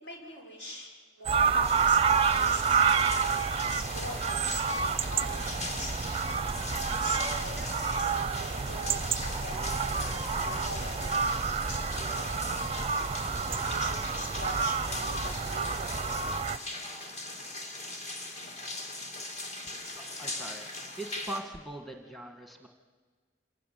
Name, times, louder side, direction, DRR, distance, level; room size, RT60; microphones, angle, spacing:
voice 1, 0.0-0.9 1.2-2.8 3.1-3.4 3.7-4.8 5.1-6.0 7.0-13.2 13.6-16.2, left 1 dB, 65° left, 1 dB, 5.6 m, -43 dB
sound 1, 1.3-16.6, right 5 dB, 30° right, 0.6 m, -29 dB
sound 2, 1.6-21.4, left 2 dB, 35° left, 2.6 m, -40 dB
voice 2, 19.9-22.7, right 1 dB, ahead, 4 dB, 1.6 m, -41 dB
26.5 x 15.0 x 9.3 m, 1.5 s
head